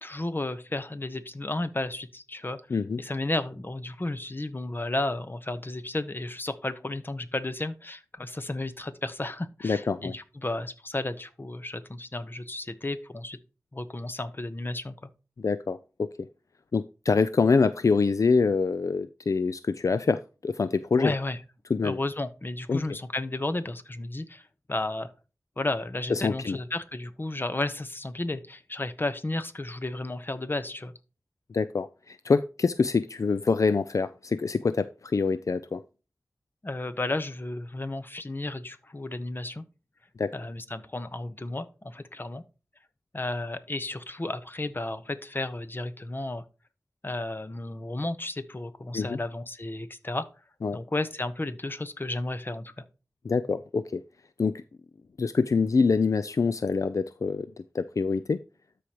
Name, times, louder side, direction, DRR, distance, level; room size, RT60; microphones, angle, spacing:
voice 1, 0.0-2.6 3.0-13.4 13.7-14.9 21.0-21.4 21.8-25.1 25.6-30.9 36.6-39.6 40.3-42.4 43.1-46.4 47.0-50.3 50.7-52.8, left 2 dB, 35° left, 1.0 m, -33 dB
voice 2, 9.6-10.1 15.4-16.3 16.7-21.1 21.7-22.0 22.7-22.8 26.1-26.6 31.5-35.8 40.2-40.3 48.9-49.2 50.6-50.8 53.2-54.0 54.4-54.5 55.2-57.5 57.7-58.4, left 4 dB, 70° left, 0.4 m, -25 dB
12.5 x 5.0 x 3.0 m
wide cardioid pair, 50°, 6 cm